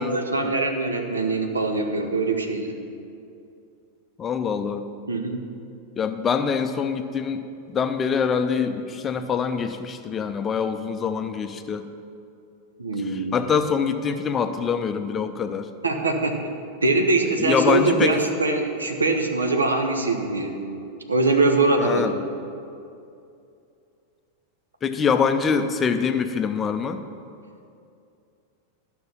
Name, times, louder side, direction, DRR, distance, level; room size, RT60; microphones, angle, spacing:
voice 1, 0.0-2.7 5.1-5.4 12.8-13.4 15.8-16.3 16.8-20.6 21.1-22.1, right 3 dB, 75° right, 4 dB, 0.9 m, -22 dB
voice 2, 4.2-4.8 6.0-7.4 7.7-11.9 13.0-15.7 17.4-18.2 21.8-22.2 24.8-27.0, left 6 dB, 20° left, 8 dB, 0.5 m, -24 dB
12.0 x 6.0 x 5.6 m, 2.5 s
figure-of-eight pair, 90°, 0 cm